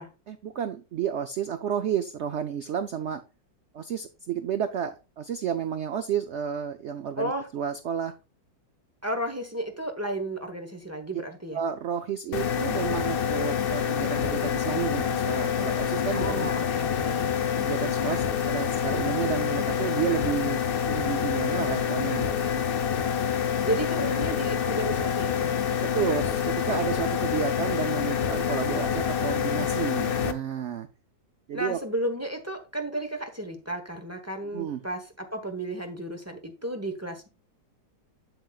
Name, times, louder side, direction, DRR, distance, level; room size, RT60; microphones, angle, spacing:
voice 1, 0.3-3.2 3.7-8.1 11.5-16.5 17.6-20.6 20.9-22.6 25.8-30.9 31.5-31.8 34.5-34.8, right 8 dB, 90° right, 0.6 m, -31 dB
voice 2, 7.1-7.5 9.0-11.6 16.1-17.4 23.6-25.6 31.5-37.3, right 1 dB, 10° right, 0.8 m, -33 dB
sound 1, 12.3-30.3, left 8 dB, 65° left, 0.5 m, -27 dB
7.6 x 7.1 x 2.4 m
omnidirectional pair, 1.9 m